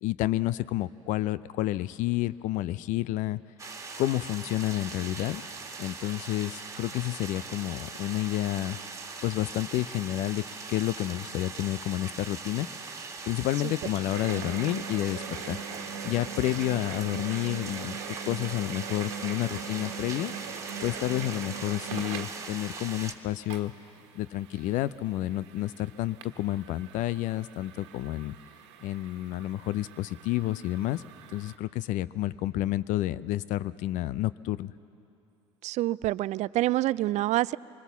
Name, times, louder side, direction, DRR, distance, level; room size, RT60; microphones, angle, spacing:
voice 1, 0.0-3.4 4.0-5.4 5.8-8.8 9.2-10.4 10.7-12.7 13.3-15.6 16.0-20.3 20.8-23.7 24.1-28.3 28.8-31.0 31.3-34.7, left 15 dB, 55° left, 18 dB, 0.6 m, -30 dB
sound 1, 3.6-23.1, right 4 dB, 20° right, 1.9 m, -41 dB
sound 2, 14.1-31.6, right 6 dB, 75° right, 1.5 m, -42 dB
voice 2, 35.6-37.6, right 16 dB, 50° right, 20 dB, 0.4 m, -27 dB
25.0 x 21.0 x 7.1 m, 2.8 s
hypercardioid pair, 70°, 15 cm